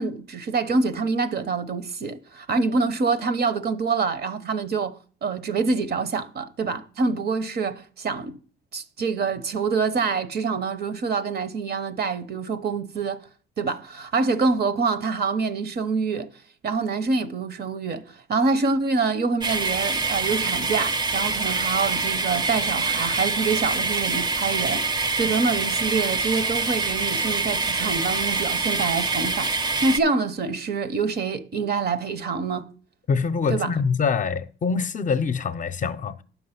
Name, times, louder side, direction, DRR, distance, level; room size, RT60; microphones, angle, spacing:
voice 1, 0.0-8.4 8.7-13.3 13.6-16.3 16.6-32.7 33.5-33.7, right 4 dB, 55° right, 0.8 m, -26 dB
sound 1, 19.4-30.0, right 3 dB, 20° right, 0.5 m, -25 dB
voice 2, 33.1-36.2, left 5 dB, 40° left, 0.6 m, -24 dB
7.3 x 5.8 x 5.8 m
cardioid pair, 90°, 20 cm